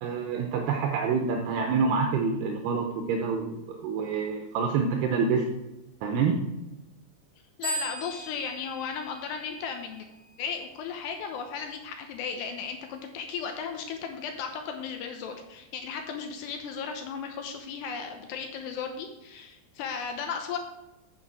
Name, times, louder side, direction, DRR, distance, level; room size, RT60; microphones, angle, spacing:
voice 1, 0.0-5.5 6.0-6.4, right 5 dB, 80° right, 2 dB, 2.6 m, -27 dB
voice 2, 7.6-10.1 10.4-20.6, left 6 dB, 80° left, 4 dB, 2.7 m, -35 dB
sound 1, 7.6-10.1, equal, 25° right, 3.6 m, -37 dB
8.4 x 7.4 x 6.2 m, 0.97 s
omnidirectional pair, 5.4 m